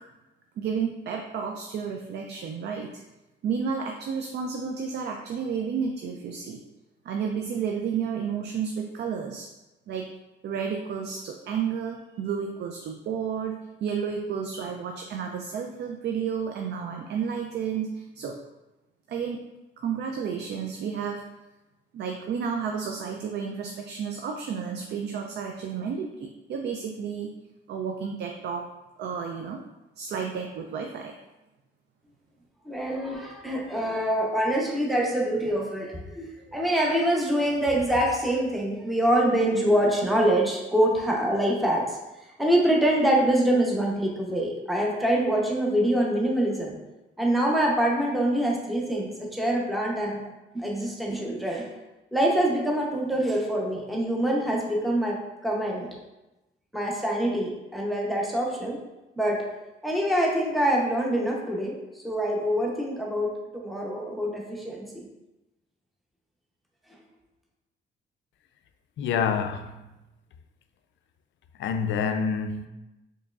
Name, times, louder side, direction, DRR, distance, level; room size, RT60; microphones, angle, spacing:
voice 1, 0.6-2.9 3.4-6.6 7.0-9.5 9.9-10.1 10.4-18.4 19.1-19.4 19.8-21.3 21.9-27.4 27.7-28.7 29.0-29.6 30.0-31.1, right 6 dB, 60° right, 0.4 m, -31 dB
voice 2, 32.7-42.0 42.4-46.8 47.2-50.2 50.5-51.7 52.1-55.9 56.7-58.8 59.2-59.4 59.8-65.0, right 1 dB, ahead, 0.7 m, -25 dB
voice 3, 69.0-69.8 71.6-72.7, left 6 dB, 70° left, 0.4 m, -27 dB
4.5 x 3.1 x 2.4 m
cardioid pair, 90°, 20 cm